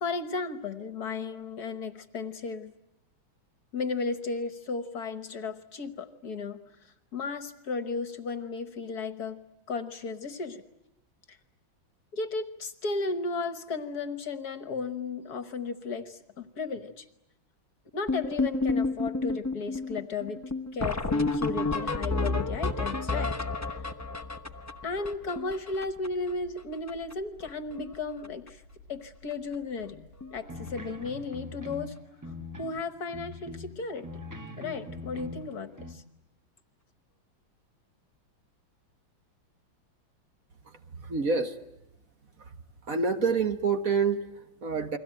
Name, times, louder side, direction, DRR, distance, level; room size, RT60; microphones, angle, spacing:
voice 1, 0.0-2.7 3.7-6.6 6.8-9.4 9.7-10.6 11.3-11.4 12.1-17.1 17.9-20.4 20.7-23.3 23.7-23.8 24.8-28.6 28.9-30.1 30.3-31.9 32.6-34.2 34.6-36.0, left 4 dB, 55° left, 11 dB, 1.6 m, -34 dB
sound 1, 18.1-26.3 26.6-26.7 26.9-27.1 27.4-27.9 28.2-28.5 29.3-29.4 29.8-29.9 30.2-30.4 32.6-32.7 35.1-35.2, left 3 dB, 20° left, 0.4 m, -30 dB
sound 2, 20.4-31.1, left 1 dB, 90° right, 9.1 m, -58 dB
sound 3, 30.4-32.8 33.1-35.9, left 2 dB, 10° right, 1.7 m, -42 dB
voice 2, 40.6-41.6 42.4-42.6 42.8-45.0, right 5 dB, 45° right, 8 dB, 1.7 m, -28 dB
30.0 x 22.5 x 9.0 m, 0.86 s
omnidirectional pair, 2.2 m